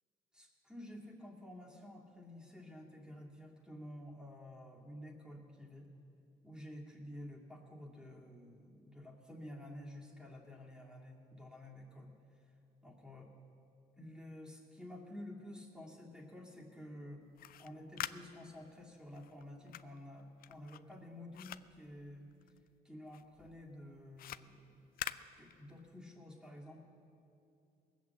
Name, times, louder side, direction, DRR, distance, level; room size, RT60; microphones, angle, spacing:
voice 1, 0.3-5.9 6.4-12.1 12.8-13.3 14.0-17.2 17.6-22.3 22.8-24.8 25.4-26.8, left 1 dB, 5° right, -2 dB, 2.3 m, -51 dB
sound 1, 17.2-22.8 23.1-26.0, left 12 dB, 65° left, 0.4 m, -47 dB
19.5 x 8.3 x 7.3 m, 2.6 s
cardioid pair, 105°, 16 cm